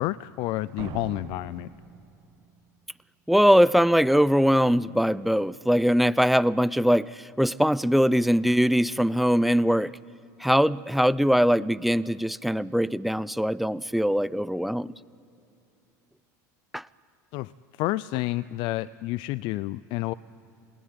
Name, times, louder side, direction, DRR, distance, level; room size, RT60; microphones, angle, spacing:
voice 1, 0.0-1.7 17.3-17.5 17.8-20.1, left 17 dB, 60° left, 18 dB, 0.5 m, -29 dB
Slam, 0.8-2.7, right 10 dB, 55° right, 1.1 m, -42 dB
voice 2, 3.3-9.9 10.4-14.9 16.7-16.8, equal, ahead, 18 dB, 0.5 m, -22 dB
28.5 x 19.5 x 9.5 m, 2.8 s
hypercardioid pair, 90°, 10 cm